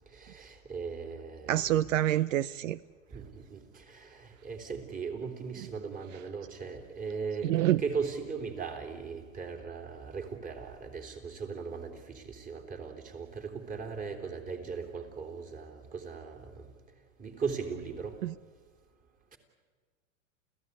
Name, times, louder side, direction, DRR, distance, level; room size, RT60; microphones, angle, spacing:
voice 1, 0.1-1.9 3.1-16.7 17.2-18.2, right 5 dB, 20° right, 5 dB, 3.5 m, -38 dB
voice 2, 1.5-2.8 7.4-7.8 18.2-18.3, right 13 dB, 75° right, 20 dB, 0.6 m, -27 dB
29.5 x 15.5 x 9.8 m, 1.5 s
hypercardioid pair, 130°, 40 cm